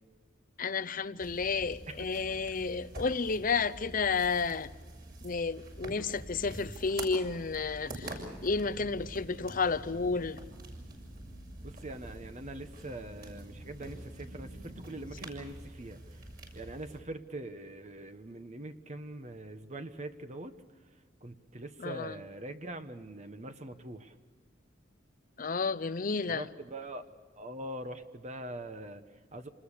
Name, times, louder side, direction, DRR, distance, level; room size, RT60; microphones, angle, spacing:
voice 1, 0.6-4.7 5.2-10.4 21.8-22.1 25.4-26.5, left 4 dB, 45° left, 0.7 m, -31 dB
sound 1, 1.2-17.0, right 1 dB, 50° right, 6.8 m, -46 dB
voice 2, 11.6-16.3 16.5-20.6 21.2-24.1 26.3-27.1 27.3-29.5, right 1 dB, 35° right, 1.2 m, -43 dB
28.0 x 20.5 x 6.8 m
head